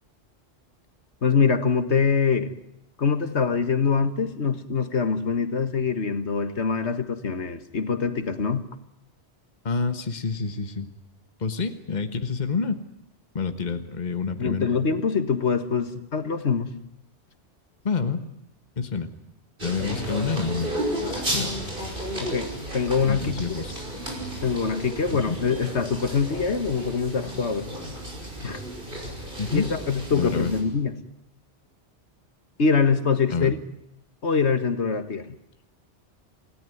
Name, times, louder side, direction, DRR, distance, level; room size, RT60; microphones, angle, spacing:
voice 1, 1.2-2.5 3.0-8.7 14.4-16.7 22.2-23.4 24.4-27.7 28.4-28.6 29.5-31.0 32.6-33.6 34.2-35.4, left 5 dB, 75° left, 10 dB, 2.0 m, -24 dB
voice 2, 9.6-10.9 11.4-12.8 13.3-14.7 17.8-18.2 18.8-19.1 19.6-20.7 21.0-21.5 23.0-23.7 25.1-25.4 29.4-29.7 30.1-30.5 33.3-33.5, left 5 dB, 40° left, 8 dB, 1.5 m, -28 dB
sound 1, 19.6-30.6, right 1 dB, 50° right, 6.4 m, -33 dB
28.0 x 18.0 x 9.4 m, 0.84 s
omnidirectional pair, 1.2 m